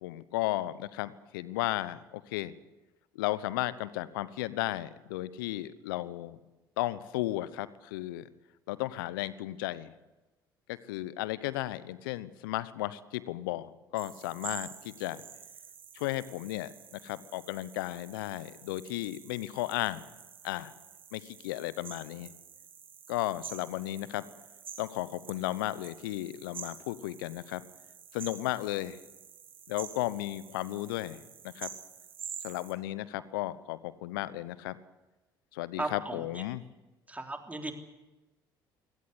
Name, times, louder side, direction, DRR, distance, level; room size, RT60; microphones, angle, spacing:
voice 1, 0.0-2.5 3.1-6.4 6.8-8.3 8.7-9.9 10.7-15.2 15.9-20.0 20.4-20.7 21.1-22.3 23.1-24.3 24.8-27.6 28.1-29.0 29.7-31.7 32.4-34.8 35.5-36.6, left 16 dB, 75° left, 17 dB, 1.0 m, -34 dB
sound 1, 13.9-32.7, right 7 dB, 90° right, 1.8 m, -48 dB
voice 2, 35.8-36.2 37.1-37.7, right 2 dB, 15° right, 3 dB, 3.6 m, -36 dB
23.5 x 17.5 x 8.2 m, 1.1 s
hypercardioid pair, 55°, 11 cm